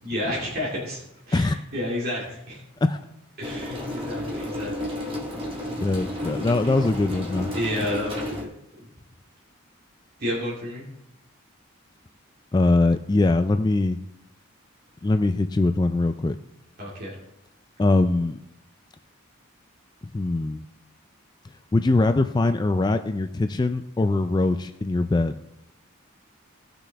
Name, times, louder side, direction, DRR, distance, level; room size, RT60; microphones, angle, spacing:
voice 1, 0.0-1.0 1.3-2.6 3.4-4.7 6.2-6.3 7.5-8.5 10.2-10.9 16.8-17.1, left 1 dB, 50° right, -6 dB, 2.3 m, -30 dB
sound 1, 3.4-8.4, left 1 dB, 25° right, 1.7 m, -32 dB
voice 2, 5.8-7.5 12.5-14.0 15.0-16.4 17.8-18.4 20.0-20.6 21.7-25.4, left 2 dB, 20° left, 8 dB, 0.3 m, -22 dB
17.5 x 5.9 x 3.5 m, 0.85 s
head